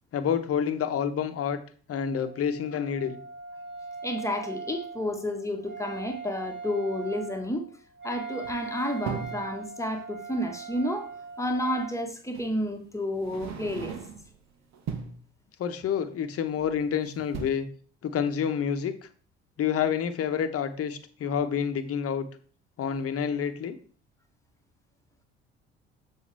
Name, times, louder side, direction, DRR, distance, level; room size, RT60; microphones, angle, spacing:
voice 1, 0.1-1.6 1.9-3.2 15.6-17.7 18.0-18.9 19.6-22.3 22.8-23.8, left 8 dB, 45° left, 1.1 m, -28 dB
Wind instrument woodwind instrument, 1.9-11.9, right 4 dB, 35° right, 3.1 m, -40 dB
voice 2, 4.0-7.6 8.0-11.1 11.4-13.9, left 1 dB, 10° left, 1.4 m, -31 dB
sound 1, 8.4-9.5 11.1-11.2 12.3-12.6 13.1-14.4 14.7-15.2 16.6-16.9 17.2-17.5, right 6 dB, 55° right, 1.3 m, -38 dB
7.2 x 6.5 x 3.4 m
figure-of-eight pair, 55°, 33 cm